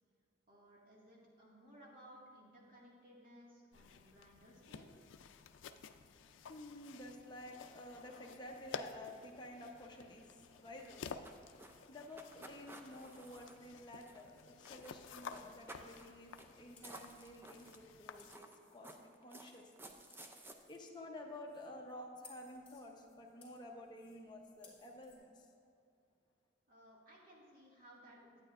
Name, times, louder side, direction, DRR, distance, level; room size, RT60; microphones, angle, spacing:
voice 1, 0.5-4.9 26.7-28.4, equal, 50° right, -4 dB, 1.9 m, -60 dB
sound 1, 3.7-18.4, left 5 dB, 85° left, 0.4 m, -53 dB
voice 2, 6.2-19.9 20.7-25.3, left 1 dB, 25° left, 0 dB, 0.8 m, -52 dB
sound 2, 10.8-14.4 14.6-15.0 15.2-16.1 16.4-16.5 16.8-17.9 18.3-20.5, right 2 dB, 10° right, 0.5 m, -55 dB
sound 3, 16.6-25.2, left 4 dB, 10° left, 2.0 m, -66 dB
11.0 x 8.8 x 2.5 m, 2.4 s
head